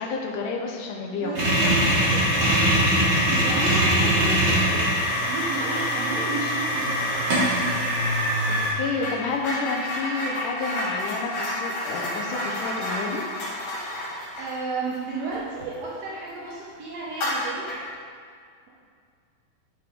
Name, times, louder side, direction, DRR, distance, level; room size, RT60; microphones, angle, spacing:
voice 1, 0.0-1.4 8.5-13.2, left 4 dB, 75° left, 0 dB, 2.0 m, -30 dB
voice 2, 1.1-1.7 2.0-2.8 3.3-4.9 5.3-7.0 14.3-17.7, right 4 dB, 80° right, -6 dB, 1.5 m, -33 dB
sound 1, 1.4-8.7, equal, 40° right, 2.2 m, -22 dB
sound 2, 7.3-7.6 7.9-16.1 16.4-16.6 17.1-17.9, left 1 dB, 55° left, 2.9 m, -31 dB
11.5 x 4.8 x 3.6 m, 2.2 s
omnidirectional pair, 4.3 m